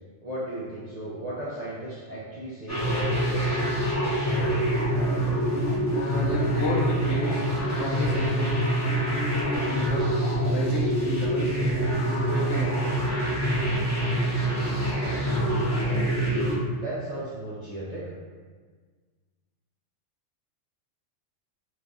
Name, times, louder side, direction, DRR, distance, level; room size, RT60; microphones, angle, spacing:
voice 1, 0.2-3.8 15.9-18.1, right 1 dB, 50° right, -8 dB, 0.5 m, -36 dB
sound 1, 2.7-16.5, right 1 dB, 15° left, 0.9 m, -25 dB
voice 2, 5.9-10.1 10.5-11.6 12.3-13.1, left 2 dB, 65° left, -3 dB, 0.9 m, -32 dB
3.2 x 2.6 x 3.5 m, 1.5 s
omnidirectional pair, 1.3 m